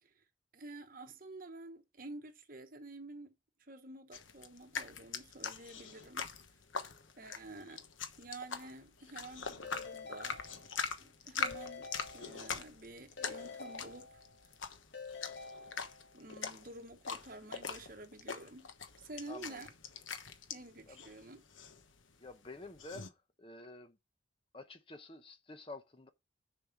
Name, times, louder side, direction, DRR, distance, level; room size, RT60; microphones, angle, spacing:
voice 1, 0.5-3.3 3.6-6.3 7.2-7.8 8.2-10.4 11.0-14.1 16.1-18.7 19.0-19.7 20.5-21.4, right 2 dB, 45° right, 1.2 m, -50 dB
sound 1, 4.1-23.1, left 5 dB, 85° left, 1.2 m, -43 dB
Keyboard (musical) / Ringtone, 9.6-11.0 11.4-12.7 13.2-14.5 14.9-16.3, left 4 dB, 60° left, 2.2 m, -48 dB
voice 2, 19.3-19.7 20.9-21.0 22.2-24.0 24.5-26.1, left 2 dB, 30° left, 0.8 m, -50 dB
6.9 x 5.4 x 6.1 m
head